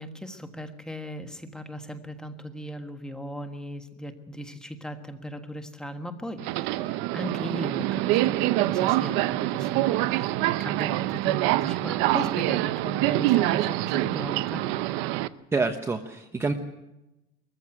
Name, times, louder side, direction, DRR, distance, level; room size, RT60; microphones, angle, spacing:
voice 1, 0.0-14.6, equal, 5° left, 6 dB, 1.4 m, -38 dB
Subway metro underground, 6.4-15.3, right 16 dB, 65° right, 0.8 m, -25 dB
voice 2, 15.5-16.5, right 3 dB, 10° right, 5 dB, 1.0 m, -27 dB
22.0 x 14.5 x 9.0 m, 0.96 s
cardioid pair, 165°, 21 cm